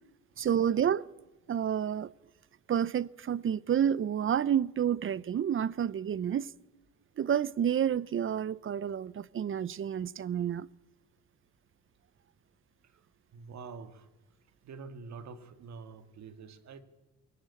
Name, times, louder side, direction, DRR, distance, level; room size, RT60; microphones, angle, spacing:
voice 1, 0.4-1.0 1.5-2.1 2.7-6.5 7.2-10.7, right 9 dB, 45° right, 0.6 m, -29 dB
voice 2, 13.3-14.1 14.6-16.8, right 5 dB, 65° right, 2.1 m, -46 dB
22.0 x 18.0 x 8.6 m
cardioid pair, 90°, 30 cm